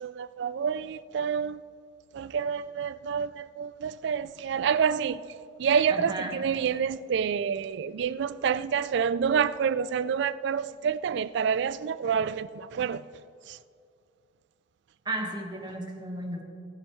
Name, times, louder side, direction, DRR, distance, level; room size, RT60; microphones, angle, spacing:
voice 1, 0.0-1.6 2.1-13.1 13.5-13.6, right 7 dB, 65° right, 0.3 m, -28 dB
voice 2, 5.9-6.4 15.0-16.4, right 1 dB, 25° right, 1.4 m, -34 dB
18.5 x 8.4 x 3.1 m
head